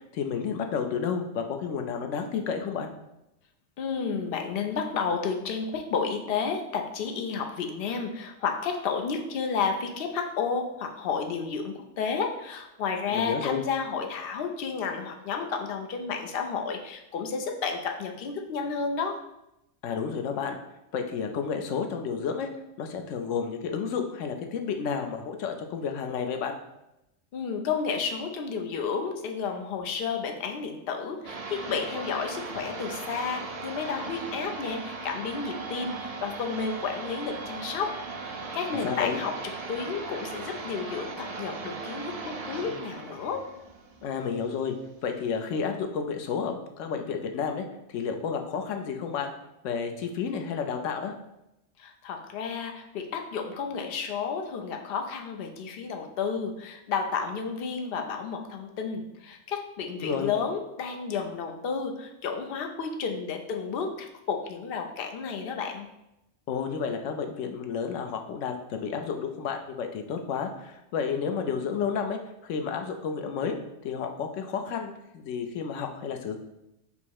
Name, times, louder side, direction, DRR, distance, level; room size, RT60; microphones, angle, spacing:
voice 1, 0.1-2.9 13.1-13.6 19.8-20.6 20.9-22.5 22.8-26.6 38.8-39.2 44.0-44.7 45.0-47.6 47.9-49.3 49.6-51.1 60.0-60.3 66.5-73.6 73.8-76.4, left 6 dB, 80° left, 5 dB, 0.9 m, -31 dB
voice 2, 3.8-19.3 27.3-39.4 39.7-43.5 51.8-65.9, left 5 dB, 60° left, 4 dB, 0.7 m, -31 dB
sound 1, 31.2-44.7, right 3 dB, 60° right, 0.4 m, -38 dB
5.3 x 2.0 x 4.6 m, 0.88 s
omnidirectional pair, 1.3 m